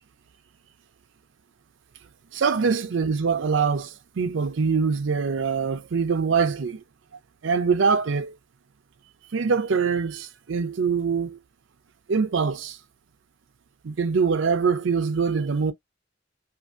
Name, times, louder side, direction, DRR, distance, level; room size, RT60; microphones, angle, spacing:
voice 1, 2.3-6.8 7.4-8.3 9.3-11.4 12.1-12.8 13.8-15.7, right 5 dB, 75° right, 0.5 m, -24 dB
2.6 x 2.5 x 2.5 m
head